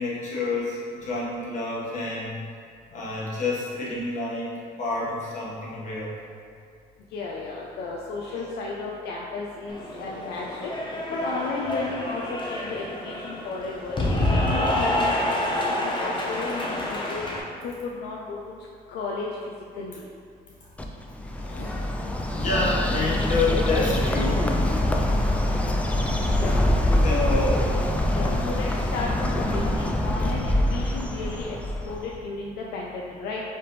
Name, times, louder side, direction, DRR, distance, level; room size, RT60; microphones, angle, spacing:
voice 1, 0.0-2.4 2.9-4.5 4.8-6.1 8.3-8.4 21.4-21.9 22.2-24.5 26.9-27.5 28.1-28.5, left 3 dB, 45° left, -6 dB, 1.3 m, -29 dB
voice 2, 7.1-10.7 11.1-14.0 14.3-15.3 15.8-17.3 17.6-18.4 18.9-19.3 19.7-20.0 26.3-26.6 27.1-27.8 28.1-31.6 31.8-33.4, left 3 dB, 75° left, -2 dB, 0.5 m, -33 dB
Cheering / Applause, 9.7-17.4, left 1 dB, 30° left, 0.8 m, -27 dB
Bird, 20.8-32.2, left 1 dB, 10° left, 0.3 m, -24 dB
4.7 x 3.4 x 3.1 m, 2.3 s
cardioid pair, 110°, 17 cm